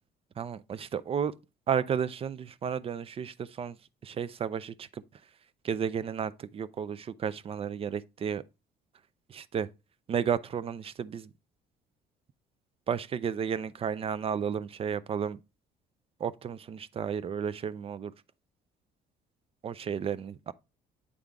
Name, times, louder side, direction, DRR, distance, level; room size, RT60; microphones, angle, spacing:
voice 1, 0.4-1.3 1.7-3.8 4.0-5.0 5.6-8.4 9.3-9.7 10.1-11.3 12.9-15.4 16.2-18.1 19.6-20.5, right 7 dB, 35° right, 0.4 m, -32 dB
8.2 x 3.7 x 3.4 m
cardioid pair, 110°, 17 cm